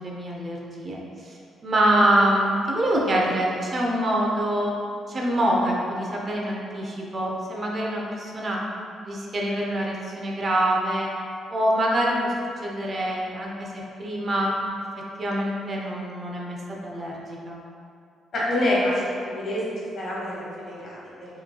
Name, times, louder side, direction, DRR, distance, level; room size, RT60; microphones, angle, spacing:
voice 1, 0.0-4.8 5.1-8.6 9.1-11.1 11.5-12.3 12.6-14.6 15.2-17.6, right 1 dB, 40° right, -3 dB, 0.6 m, -25 dB
voice 2, 18.3-19.6 20.0-21.4, left 1 dB, 55° left, -6 dB, 1.3 m, -27 dB
4.9 x 3.1 x 2.2 m, 2.5 s
cardioid pair, 90°, 0 cm